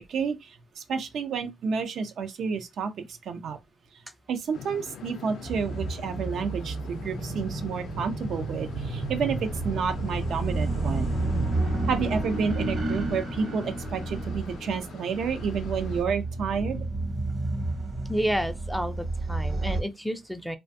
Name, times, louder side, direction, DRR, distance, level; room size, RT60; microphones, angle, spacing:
voice 1, 0.0-3.6 4.3-11.1 11.9-16.8, right 6 dB, 65° right, 0.4 m, -30 dB
sound 1, 4.5-16.0, left 6 dB, 70° left, 0.4 m, -42 dB
sound 2, 5.5-19.8, right 2 dB, 45° right, 0.8 m, -31 dB
voice 2, 18.1-20.6, equal, ahead, 0.3 m, -30 dB
2.5 x 2.2 x 2.6 m
cardioid pair, 90°, 0 cm